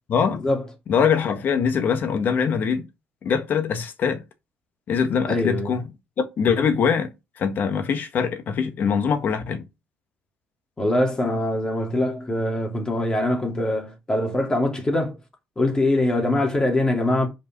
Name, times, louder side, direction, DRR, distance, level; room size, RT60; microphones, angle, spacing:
voice 1, 0.1-0.4 0.9-2.9 3.2-4.2 4.9-5.9 6.2-9.6, left 6 dB, 50° left, 1.4 m, -23 dB
voice 2, 5.3-5.8 10.8-15.2 15.6-17.3, left 1 dB, 20° left, 2.6 m, -23 dB
5.5 x 5.0 x 5.9 m
cardioid pair, 105°, 4 cm